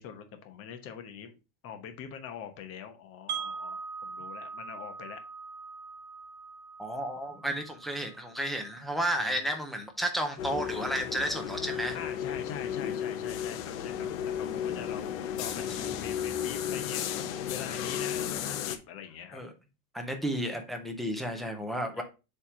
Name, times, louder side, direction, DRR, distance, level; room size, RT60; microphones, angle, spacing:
voice 1, 0.0-1.4 1.6-5.2 9.2-9.4 11.9-15.1 15.4-19.4 21.9-22.0, left 8 dB, 30° left, 6 dB, 1.1 m, -43 dB
Wind chime, 3.3-9.3, right 5 dB, 55° right, 2.8 m, -42 dB
voice 2, 6.8-12.0 15.6-15.7 19.3-19.5 19.9-22.0, right 1 dB, ahead, 3 dB, 0.4 m, -32 dB
sound 1, 10.4-18.8, left 9 dB, 65° left, 1.1 m, -34 dB
7.2 x 3.5 x 4.9 m, 0.29 s
supercardioid pair, 150°, 44 cm